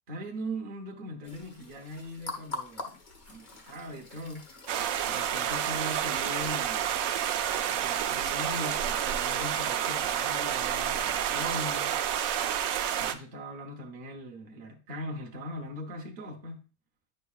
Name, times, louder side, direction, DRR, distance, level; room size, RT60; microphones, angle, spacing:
voice 1, 0.1-3.0 3.3-4.5 5.1-7.0 7.7-12.0 13.0-16.6, equal, 40° right, 1.0 m, -40 dB
sound 1, 1.2-11.8, left 2 dB, 35° left, 1.1 m, -47 dB
sound 2, 4.7-13.2, right 10 dB, 75° right, 0.9 m, -29 dB
9.7 x 5.4 x 2.3 m
omnidirectional pair, 1.5 m